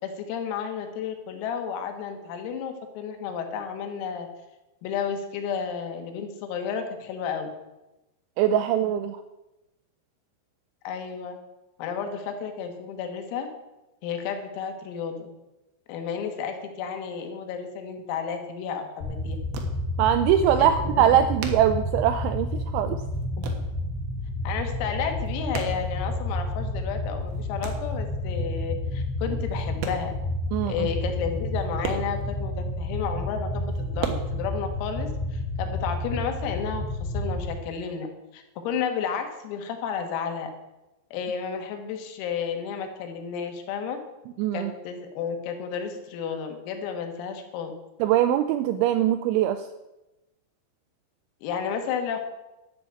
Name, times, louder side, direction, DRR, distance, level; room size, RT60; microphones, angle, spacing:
voice 1, 0.0-4.3 4.8-7.5 10.9-11.4 11.8-13.5 14.0-15.3 15.9-19.4 20.6-20.7 21.0-21.2 23.4-23.5 24.5-30.1 30.7-40.5 41.1-44.0 44.5-47.7 51.4-52.2, left 7 dB, 85° left, 6 dB, 4.3 m, -32 dB
voice 2, 8.4-9.2 20.0-23.0 30.5-30.9 44.4-44.7 48.0-49.7, right 10 dB, 85° right, 10 dB, 2.7 m, -22 dB
sound 1, 18.6-18.7 18.9-20.1 20.4-20.5 20.7-22.5 22.8-23.8 24.1-24.6 24.9-26.6 27.0-28.0 28.8-28.9 29.4-30.4 30.6-30.7 31.0-31.1 31.3-32.8 33.3-34.1, right 7 dB, 65° right, 2.5 m, -37 dB
sound 2, 19.0-37.5, left 1 dB, 55° left, 3.5 m, -30 dB
12.0 x 7.2 x 8.8 m, 0.99 s
omnidirectional pair, 5.9 m